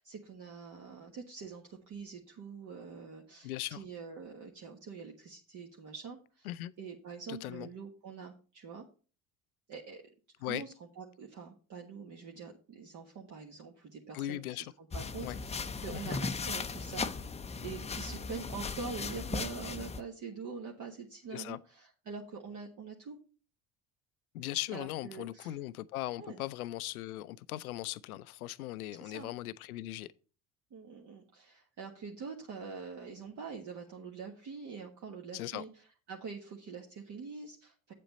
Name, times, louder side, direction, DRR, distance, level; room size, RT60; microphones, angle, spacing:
voice 1, 0.0-6.5 6.8-8.8 9.7-10.0 10.4-17.1 17.6-23.2 24.7-25.6 26.2-26.4 28.9-29.3 30.7-37.9, right 5 dB, 45° right, 1.4 m, -45 dB
voice 2, 3.4-3.8 6.5-6.7 7.3-7.7 10.4-10.6 14.1-14.7 15.2-15.4 15.9-16.1 21.3-21.6 24.3-30.1 35.3-35.6, left 15 dB, 80° left, 0.5 m, -39 dB
sound 1, 14.9-20.0, left 4 dB, 15° left, 0.6 m, -37 dB
8.5 x 7.5 x 4.1 m
hypercardioid pair, 65°, 43 cm